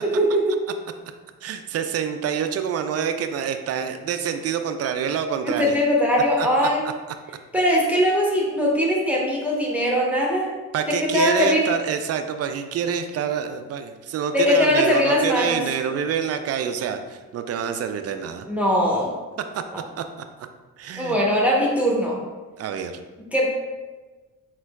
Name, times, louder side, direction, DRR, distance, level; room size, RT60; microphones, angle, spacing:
voice 1, 0.0-0.6 5.4-6.8 7.5-10.5 10.9-11.6 14.3-15.6 18.5-19.1 21.0-22.2 23.3-23.5, equal, 5° right, -4 dB, 0.9 m, -20 dB
voice 2, 1.4-5.8 6.4-6.7 10.7-18.5 19.5-19.6 20.0-20.1 20.8-21.2 22.6-22.9, right 7 dB, 35° right, 8 dB, 0.4 m, -27 dB
4.2 x 3.9 x 2.3 m, 1.3 s
hypercardioid pair, 40°, 44 cm